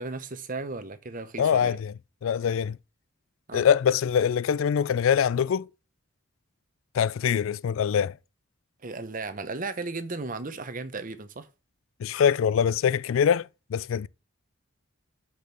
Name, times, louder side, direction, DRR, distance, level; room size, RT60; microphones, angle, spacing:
voice 1, 0.0-1.8 3.5-3.6 8.8-11.5, right 3 dB, 40° right, 0.8 m, -35 dB
voice 2, 1.4-1.9 2.2-2.8 3.5-5.7 6.9-8.2 12.0-14.1, left 8 dB, 70° left, 0.3 m, -24 dB
6.0 x 5.2 x 6.8 m
head